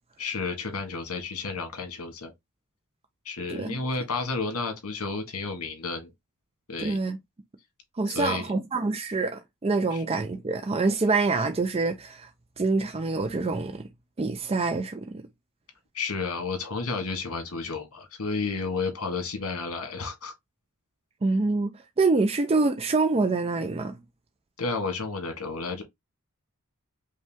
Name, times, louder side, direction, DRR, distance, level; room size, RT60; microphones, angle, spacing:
voice 1, 0.2-2.3 3.2-6.1 6.7-7.0 8.0-8.5 9.9-10.0 15.9-20.3 24.6-25.8, left 4 dB, 80° left, 1.6 m, -31 dB
voice 2, 6.8-7.2 8.0-12.3 12.6-13.9 14.2-15.2 21.2-24.0, right 3 dB, 25° right, 0.4 m, -26 dB
5.3 x 2.3 x 3.5 m
head